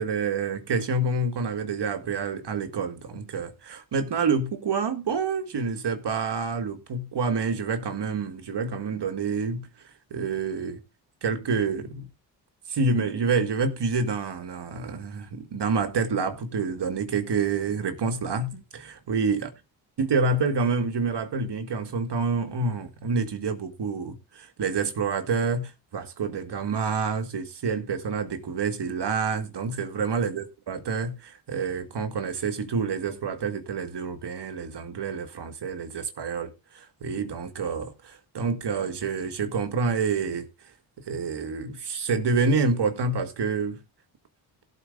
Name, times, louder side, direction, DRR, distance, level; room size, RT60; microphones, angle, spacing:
voice 1, 0.0-9.7 10.1-10.8 11.2-12.1 12.7-19.5 20.0-40.5 41.1-43.8, right 4 dB, 55° right, 1.8 m, -28 dB
17.5 x 8.1 x 2.6 m
supercardioid pair, 50°, 50 cm